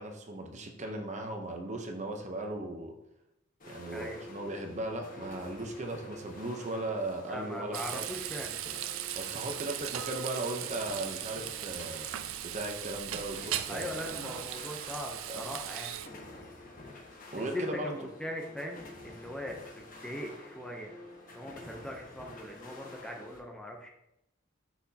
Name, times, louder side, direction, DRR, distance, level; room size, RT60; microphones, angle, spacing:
voice 1, 0.0-2.9 3.7-8.0 9.1-12.1 12.5-13.9 15.3-15.5 17.3-18.0, right 1 dB, 35° right, 4 dB, 0.8 m, -37 dB
sound 1, 3.6-23.4, left 2 dB, 45° left, 1.2 m, -49 dB
voice 2, 3.9-4.2 7.3-8.6 13.7-15.9 16.3-16.5 17.5-21.0 21.3-23.9, equal, 5° left, 1 dB, 0.6 m, -40 dB
Frying (food), 7.7-16.1, right 12 dB, 85° right, 0.4 m, -38 dB
6.1 x 5.8 x 2.8 m, 0.85 s
head